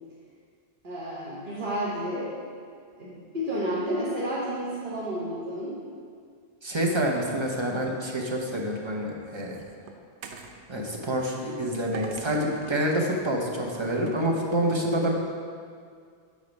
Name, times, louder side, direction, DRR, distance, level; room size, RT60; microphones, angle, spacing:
voice 1, 0.8-2.3 3.0-5.8, equal, 50° right, -7 dB, 1.3 m, -31 dB
voice 2, 6.6-9.6 10.7-15.1, right 1 dB, 30° right, 0 dB, 0.8 m, -27 dB
sound 1, 8.7-10.6 11.9-12.8 14.1-14.3, right 5 dB, 90° right, 0.9 m, -43 dB
6.8 x 5.1 x 5.2 m, 2.1 s
omnidirectional pair, 1.1 m